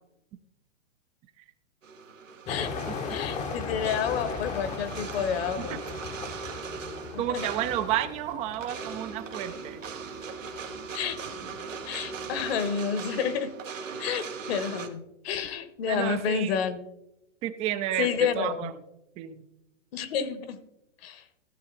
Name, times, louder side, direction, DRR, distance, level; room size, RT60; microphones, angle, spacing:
sound 1, 1.8-14.9, right 5 dB, 85° right, 1.3 m, -39 dB
voice 1, 2.5-2.8 3.1-5.8 7.1-7.4 10.9-11.2 11.9-13.5 14.0-16.8 18.0-18.7 19.9-20.6 21.0-21.2, left 7 dB, 50° left, 12 dB, 1.2 m, -30 dB
sound 2, 2.5-12.6, left 5 dB, 20° left, 0.8 m, -39 dB
voice 2, 7.2-9.8 15.9-16.6 17.4-18.7 19.2-19.4, right 12 dB, 20° right, 12 dB, 0.4 m, -31 dB
14.5 x 6.3 x 3.9 m, 0.90 s
hypercardioid pair, 125°, 37 cm